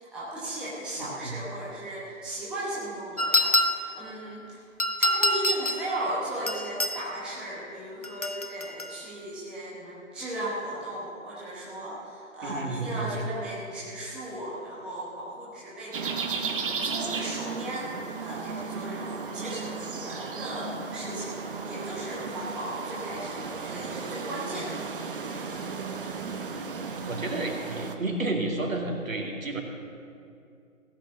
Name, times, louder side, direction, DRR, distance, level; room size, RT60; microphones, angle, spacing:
voice 1, 0.0-4.7 5.0-24.8, right 1 dB, ahead, -8 dB, 0.9 m, -36 dB
voice 2, 1.0-1.3 12.4-13.2 27.1-29.6, right 2 dB, 75° right, 1 dB, 2.5 m, -31 dB
sound 1, 3.2-4.0 4.8-5.9 6.5-7.0 8.0-8.9, left 1 dB, 30° left, 0.4 m, -26 dB
sound 2, 15.9-28.0, right 4 dB, 40° right, 1.0 m, -35 dB
16.0 x 6.4 x 8.0 m, 2.4 s
figure-of-eight pair, 140°, 40 cm